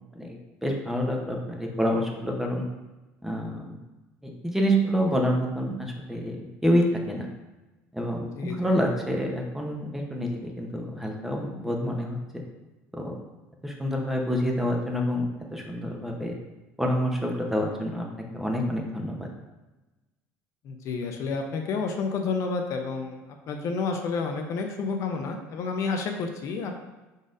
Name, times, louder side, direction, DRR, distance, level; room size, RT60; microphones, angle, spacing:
voice 1, 0.1-2.6 3.2-3.8 4.4-7.3 7.9-12.2 13.0-13.1 13.6-16.3 16.8-18.1 18.3-19.3, equal, 5° right, 1 dB, 0.7 m, -27 dB
voice 2, 8.4-8.7 20.6-26.8, left 4 dB, 55° left, 4 dB, 0.6 m, -30 dB
5.0 x 4.0 x 2.5 m, 1.1 s
supercardioid pair, 100°, 6 cm